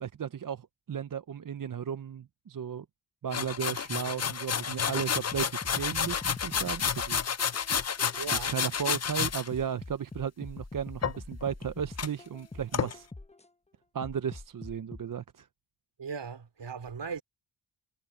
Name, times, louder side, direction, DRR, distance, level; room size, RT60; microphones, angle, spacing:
voice 1, 0.0-2.9 3.2-7.9 8.3-13.1 13.9-15.5, right 8 dB, 45° right, 0.7 m, -35 dB
sound 1, 3.3-9.5 11.0-11.6 12.0-12.1 12.7-12.9, left 7 dB, 35° left, 0.6 m, -30 dB
sound 2, 5.3-8.7 9.2-13.5 14.0-15.0, left 2 dB, 15° left, 1.0 m, -44 dB
voice 2, 8.2-8.6 16.0-17.2, right 5 dB, 60° right, 2.9 m, -38 dB
wide cardioid pair, 85°, 48 cm